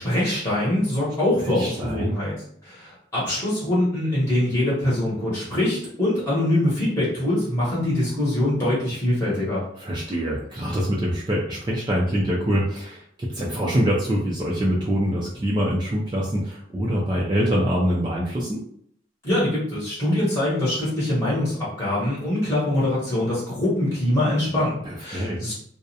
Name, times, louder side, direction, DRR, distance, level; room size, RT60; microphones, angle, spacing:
voice 1, 0.0-2.3 2.6-9.6 19.2-25.5, left 1 dB, 15° left, -8 dB, 0.9 m, -23 dB
voice 2, 1.6-2.1 9.8-18.6 24.8-25.4, equal, 25° right, -4 dB, 0.3 m, -24 dB
2.4 x 2.0 x 2.7 m, 0.65 s
head